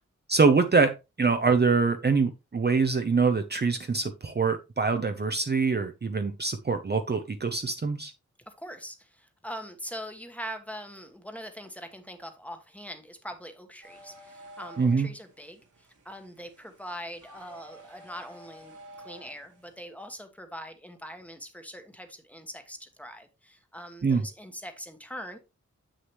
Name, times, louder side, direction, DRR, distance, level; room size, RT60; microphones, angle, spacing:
voice 1, 0.3-8.1 14.8-15.1 24.0-24.3, right 4 dB, 35° right, 0.7 m, -24 dB
voice 2, 8.5-25.4, equal, 5° left, 1.2 m, -42 dB
sound 1, 13.8-19.7, right 1 dB, 90° right, 2.4 m, -51 dB
7.7 x 6.4 x 3.1 m
wide cardioid pair, 115°, 30 cm